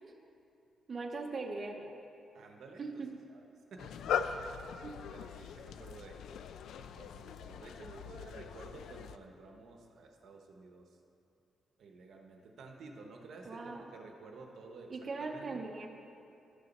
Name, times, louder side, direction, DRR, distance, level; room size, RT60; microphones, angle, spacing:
voice 1, 0.9-1.9 2.8-3.1 4.8-5.0 13.4-13.9 14.9-15.9, right 3 dB, 30° right, 2 dB, 0.7 m, -40 dB
voice 2, 2.3-3.0 3.3-3.4 3.7-4.0 4.5-4.6 5.1-6.3 6.7-10.9 11.8-14.9 15.2-15.7, right 3 dB, 60° right, 2 dB, 0.9 m, -52 dB
sound 1, 3.8-9.2, left 7 dB, 85° left, 0.4 m, -40 dB
11.5 x 6.9 x 5.3 m, 2.6 s
wide cardioid pair, 165°, 0 cm